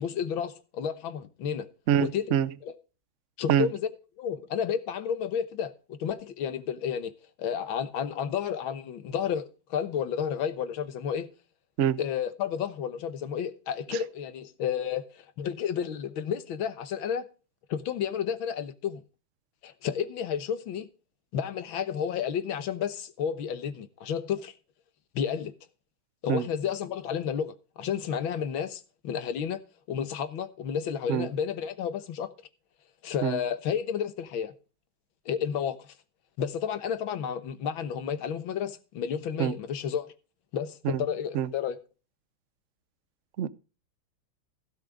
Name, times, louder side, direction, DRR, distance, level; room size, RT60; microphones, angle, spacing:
voice 1, 0.0-1.7 2.0-2.3 2.6-2.7 3.4-3.9 4.2-7.1 7.4-11.3 12.0-15.1 15.4-17.2 17.7-19.0 19.6-20.9 21.3-24.5 25.2-25.5 26.2-29.6 29.9-32.3 33.0-34.5 35.3-35.8 36.4-40.1 40.5-41.8, left 8 dB, 70° left, 1.9 m, -31 dB
voice 2, 1.9-2.5 3.5-3.7 11.8-12.0 13.9-14.0 26.3-26.5 31.1-31.3 33.2-33.4 39.4-39.5 40.8-41.0 41.3-41.5 43.4-43.5, right 10 dB, 90° right, 0.6 m, -25 dB
16.5 x 6.4 x 5.1 m
omnidirectional pair, 2.3 m